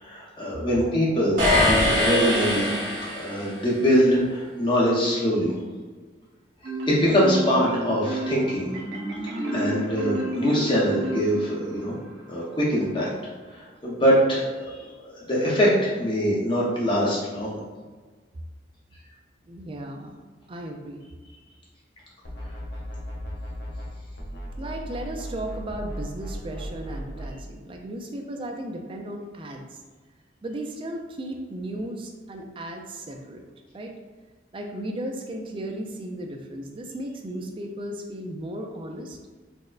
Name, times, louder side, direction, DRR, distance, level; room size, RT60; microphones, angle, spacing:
voice 1, 0.0-2.7 3.1-5.5 6.9-8.7 9.5-11.9 12.3-13.1 13.5-17.6, equal, 25° left, -5 dB, 0.8 m, -23 dB
sound 1, 1.4-3.6, left 1 dB, 50° right, 1.3 m, -22 dB
Marimba xylophone, 6.6-11.8, right 1 dB, 85° right, 0.8 m, -31 dB
voice 2, 19.5-20.2 20.5-21.0 24.6-29.8 30.4-33.4 33.7-33.9 34.5-39.2, right 1 dB, 30° right, 2 dB, 0.3 m, -35 dB
sound 2, 22.2-23.9 24.2-27.3, equal, 70° left, 0.6 m, -36 dB
4.2 x 2.1 x 2.4 m, 1.4 s
head